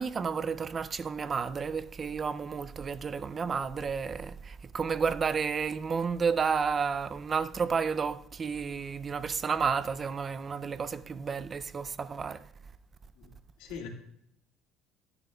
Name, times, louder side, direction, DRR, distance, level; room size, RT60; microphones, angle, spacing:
voice 1, 0.0-12.5, right 5 dB, 25° right, 0.4 m, -31 dB
voice 2, 13.2-13.9, left 6 dB, 90° left, 1.9 m, -43 dB
15.5 x 10.5 x 2.3 m
cardioid pair, 140°, 0 cm